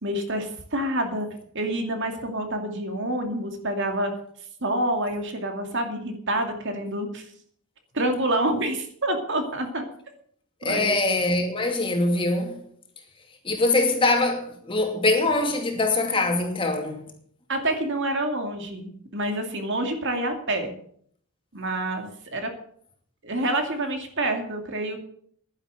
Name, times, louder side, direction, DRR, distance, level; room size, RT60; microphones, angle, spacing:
voice 1, 0.0-1.3 1.5-4.1 4.6-7.3 7.9-9.8 10.6-11.0 17.5-20.7 21.5-22.5 23.2-25.0, right 1 dB, 55° right, 2.5 m, -27 dB
voice 2, 10.6-12.5 13.4-17.0, left 2 dB, 25° left, 2.5 m, -23 dB
11.0 x 10.5 x 8.1 m
head